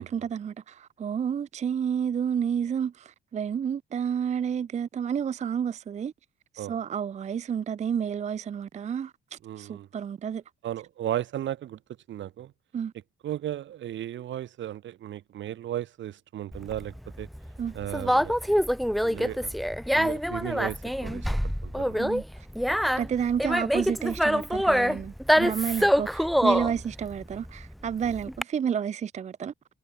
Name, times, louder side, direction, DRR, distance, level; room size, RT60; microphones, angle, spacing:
voice 1, 0.0-6.1 6.5-10.4 12.7-12.9 17.6-17.7 22.0-22.5 22.9-29.5, right 8 dB, 35° right, 0.5 m, -30 dB
voice 2, 9.4-9.9 10.6-11.8 12.1-12.5 13.2-17.3 17.7-18.6 19.0-19.5 19.9-21.3 21.6-22.1 25.8-25.9, right 12 dB, 70° right, 1.6 m, -35 dB
Conversation, 16.5-28.4, equal, ahead, 1.0 m, -26 dB
cardioid pair, 90°, 20 cm